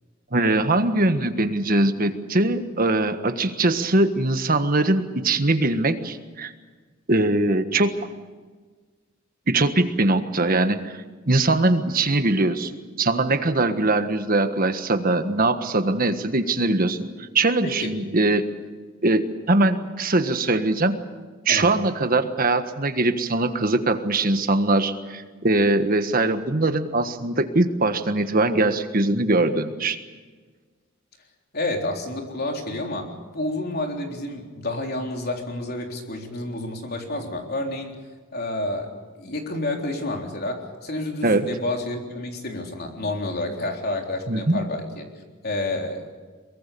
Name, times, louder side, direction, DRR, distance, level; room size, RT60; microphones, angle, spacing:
voice 1, 0.3-6.5 7.1-7.9 9.5-11.0 11.3-12.7 13.0-18.4 19.0-20.9 21.4-30.0 41.2-41.4 44.3-44.7, right 2 dB, 45° right, 8 dB, 1.5 m, -21 dB
voice 2, 31.5-37.9 38.3-38.9 39.2-46.1, left 2 dB, 50° left, 2 dB, 3.7 m, -29 dB
23.0 x 23.0 x 6.9 m, 1.4 s
head